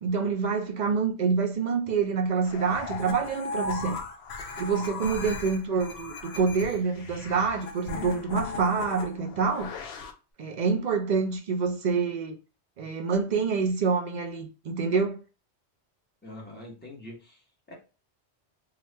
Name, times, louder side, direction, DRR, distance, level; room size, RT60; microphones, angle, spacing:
voice 1, 0.0-4.0 4.6-9.7 10.4-12.4 12.8-15.2, right 5 dB, 55° right, 0.5 m, -27 dB
sound 1, 2.4-10.1, left 4 dB, 70° left, 0.8 m, -37 dB
voice 2, 4.8-5.1 16.2-17.7, left 1 dB, 10° left, 0.9 m, -45 dB
2.9 x 2.3 x 3.2 m
omnidirectional pair, 1.2 m